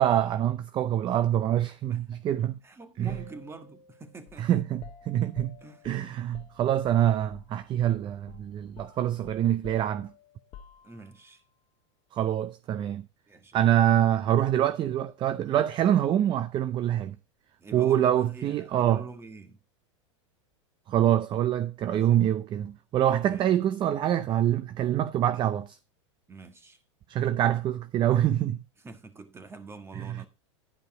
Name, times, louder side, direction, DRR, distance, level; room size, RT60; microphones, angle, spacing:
voice 1, 0.0-2.6 3.0-3.2 4.4-5.6 5.8-10.1 12.1-13.1 13.5-17.2 17.7-19.0 20.9-25.8 27.1-28.6 29.9-30.2, right 11 dB, 30° right, 0.5 m, -25 dB
voice 2, 1.9-2.2 2.6-4.5 5.6-5.9 10.8-11.4 13.3-13.6 17.6-19.6 21.9-22.2 23.2-23.5 25.1-25.2 26.3-26.8 28.8-30.3, right 3 dB, 15° right, 1.6 m, -46 dB
sound 1, 3.1-7.5 7.8-8.0 8.3-11.3, left 8 dB, 40° left, 1.3 m, -51 dB
11.0 x 5.3 x 4.8 m
hypercardioid pair, 105°, 16 cm